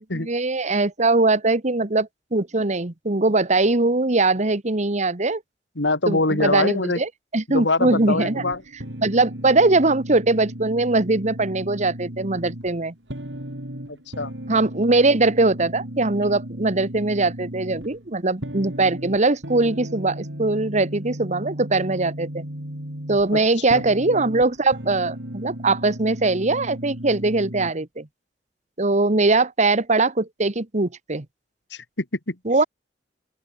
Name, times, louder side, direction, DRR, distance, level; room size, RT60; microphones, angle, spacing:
voice 1, 0.0-5.4 6.1-8.4 9.0-12.9 14.5-22.4 23.1-28.1 28.8-31.2 32.4-32.6, right 3 dB, 40° right, 1.5 m, -21 dB
voice 2, 5.8-7.0 7.5-8.6 13.9-14.3 23.3-23.4 23.7-23.8 31.7-32.4, left 2 dB, 85° left, 2.6 m, -24 dB
sound 1, 7.8-27.7, equal, 85° right, 5.9 m, -35 dB
open air
head